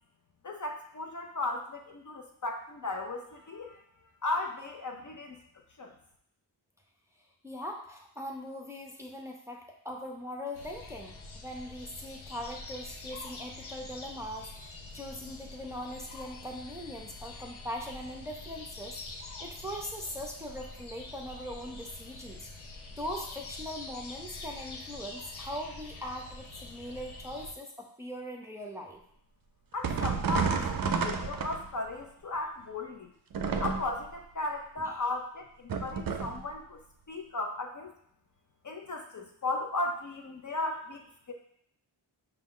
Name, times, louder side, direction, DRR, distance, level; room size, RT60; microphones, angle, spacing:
voice 1, 0.4-3.8 4.2-5.4 5.8-5.9 29.7-33.1 33.6-36.8 37.1-37.9 38.6-41.3, left 2 dB, 40° left, 2 dB, 0.6 m, -36 dB
voice 2, 7.4-22.5 22.9-29.0, equal, 5° right, 0 dB, 0.6 m, -41 dB
sound 1, 10.5-27.5, left 3 dB, 85° left, 0.7 m, -45 dB
sound 2, 29.8-31.9 33.3-34.1 35.7-36.5, right 5 dB, 50° right, 0.5 m, -30 dB
4.9 x 2.4 x 3.7 m, 0.69 s
cardioid pair, 55°, 47 cm